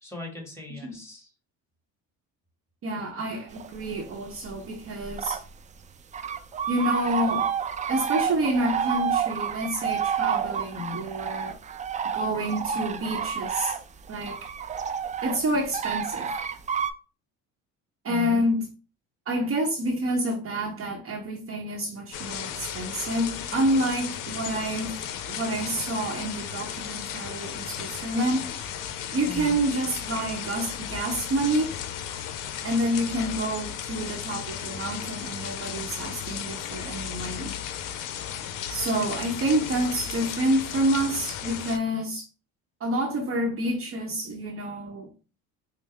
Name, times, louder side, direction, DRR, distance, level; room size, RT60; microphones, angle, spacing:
voice 1, 0.0-1.3 10.7-11.0 18.1-18.4 29.3-29.5, left 3 dB, 5° left, 1.6 m, -38 dB
voice 2, 2.8-5.4 6.7-7.5 7.9-11.6 12.1-13.8 14.1-14.4 15.2-16.3 18.0-18.7 19.3-24.9 25.3-28.5 29.1-31.7 32.6-37.5 38.7-42.3 42.8-45.1, right 1 dB, 40° right, 0.8 m, -28 dB
sound 1, 3.6-4.0 4.4-5.5 5.7-5.8 6.1-16.9, right 7 dB, 20° right, 0.3 m, -29 dB
sound 2, 22.1-41.8, left 9 dB, 65° left, 0.6 m, -35 dB
5.4 x 2.0 x 3.3 m
cardioid pair, 100°, 35 cm